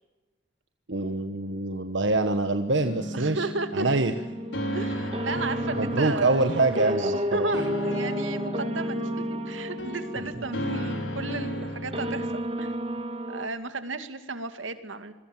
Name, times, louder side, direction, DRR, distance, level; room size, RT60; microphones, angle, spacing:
voice 1, 0.9-3.5 3.7-4.1 5.7-7.5 10.2-10.3, right 2 dB, 70° right, 7 dB, 1.4 m, -25 dB
sound 1, 2.7-12.3, equal, 75° left, 5.0 m, -35 dB
voice 2, 3.1-3.9 4.7-6.4 6.8-12.3 12.6-12.7 13.3-15.1, right 3 dB, 90° right, 9 dB, 2.4 m, -34 dB
sound 2, 3.9-13.5, equal, 30° right, 2.0 m, -32 dB
27.0 x 22.5 x 7.4 m, 1.2 s
head